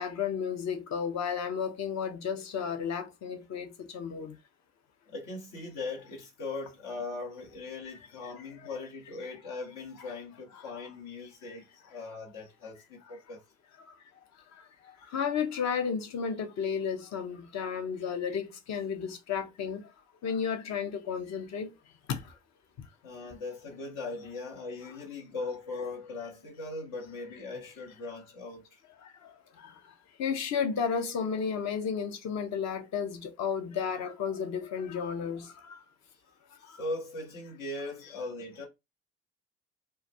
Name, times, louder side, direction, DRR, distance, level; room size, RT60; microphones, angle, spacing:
voice 1, 0.0-4.3 9.2-9.3 10.7-10.8 15.1-19.8 20.2-21.7 22.1-22.2 30.2-35.5, left 6 dB, 50° left, 0.7 m, -32 dB
voice 2, 5.1-11.6 11.9-13.4 14.9-15.1 23.0-28.8 36.7-38.7, left 3 dB, 70° left, 0.9 m, -39 dB
2.2 x 2.2 x 2.6 m
hypercardioid pair, 45°, 35 cm